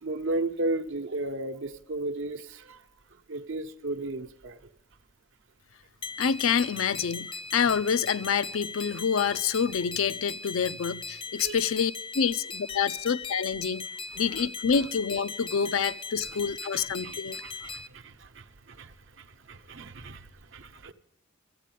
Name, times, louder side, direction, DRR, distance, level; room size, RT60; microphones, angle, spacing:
voice 1, 0.0-2.8 3.3-4.6 11.4-11.6 14.1-14.4 16.3-16.4 16.7-20.9, right 2 dB, 65° right, 0.9 m, -35 dB
sound 1, 6.0-17.9, left 4 dB, 25° left, 0.4 m, -39 dB
voice 2, 6.2-13.8 14.2-17.4, left 6 dB, 90° left, 0.5 m, -27 dB
13.0 x 8.3 x 9.2 m
head